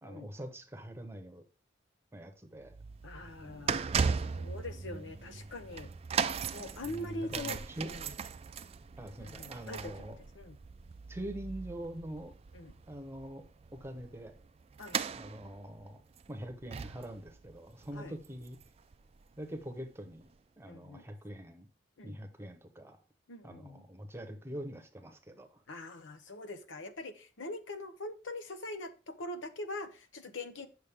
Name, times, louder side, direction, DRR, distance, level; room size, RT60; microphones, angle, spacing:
voice 1, 0.0-1.4 2.1-2.8 6.8-7.9 9.0-10.2 11.1-12.3 12.9-14.3 15.1-16.0 16.3-18.6 19.4-20.3 20.6-21.7 22.0-23.0 23.4-25.6, right 1 dB, 15° right, 0.8 m, -44 dB
sound 1, 2.6-19.0 19.2-19.5 20.2-20.3, right 6 dB, 30° right, 0.3 m, -38 dB
voice 2, 3.0-3.8 4.1-5.9 6.5-8.1 9.2-10.6 12.5-12.7 14.8-15.0 17.9-18.1 20.7-21.0 22.0-22.2 23.3-23.8 25.7-30.7, left 2 dB, 80° left, 0.8 m, -43 dB
8.4 x 6.3 x 3.5 m
head